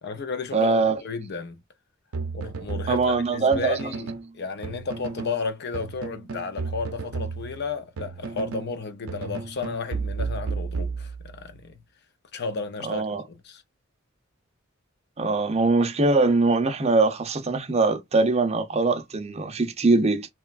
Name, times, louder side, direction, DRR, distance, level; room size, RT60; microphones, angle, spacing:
voice 1, 0.0-1.6 2.3-11.7 12.3-13.6, left 4 dB, 50° left, 0.5 m, -33 dB
voice 2, 0.5-1.0 2.9-3.8 12.8-13.2 15.2-20.3, right 3 dB, 30° right, 0.5 m, -22 dB
sound 1, 2.1-4.3 4.6-5.4 5.7-8.7 9.1-11.5, right 4 dB, 85° right, 0.5 m, -33 dB
3.0 x 2.2 x 2.4 m
head